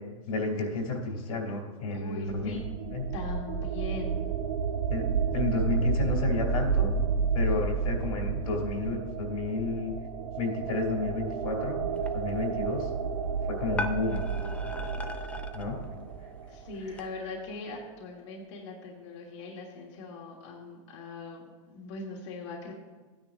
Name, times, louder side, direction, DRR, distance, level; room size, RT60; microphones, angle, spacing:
voice 1, 0.3-2.6 2.9-3.0 4.9-5.1 5.3-7.0 7.3-9.9 10.4-11.8 12.1-12.9 13.5-14.2 14.6-14.7 15.5-15.8 16.9-17.0, left 3 dB, 90° left, 1 dB, 3.1 m, -31 dB
voice 2, 1.9-2.6 3.1-4.3 15.2-15.4 16.5-22.7, left 3 dB, 55° left, -3 dB, 1.7 m, -40 dB
sound 1, 2.2-16.8, right 5 dB, 75° right, 0.9 m, -31 dB
sound 2, 11.9-17.1, left 2 dB, 5° left, 0.4 m, -41 dB
15.0 x 9.7 x 2.6 m, 1.3 s
supercardioid pair, 150°, 18 cm